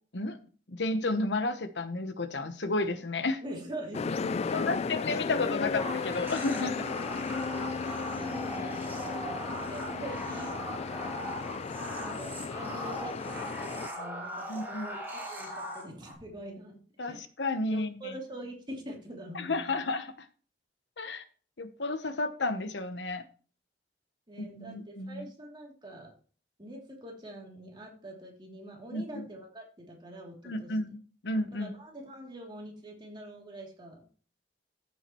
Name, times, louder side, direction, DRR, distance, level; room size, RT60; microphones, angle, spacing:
voice 1, 0.7-3.4 4.5-6.9 14.5-14.9 17.0-18.1 19.3-20.1 21.0-21.2 21.6-23.2 24.4-25.3 28.9-29.3 30.4-31.0 31.2-31.7, left 2 dB, 75° left, 10 dB, 1.0 m, -32 dB
voice 2, 3.4-4.9 7.5-8.8 9.5-10.5 11.9-16.8 17.1-17.2 17.7-19.6 24.3-26.1 26.6-30.7 31.5-34.1, right 1 dB, 25° right, -1 dB, 2.9 m, -44 dB
sound 1, 3.9-13.9, left 5 dB, 35° left, 0.3 m, -35 dB
sound 2, 5.8-16.1, right 1 dB, 10° right, 2.7 m, -39 dB
14.0 x 7.3 x 3.1 m, 0.41 s
head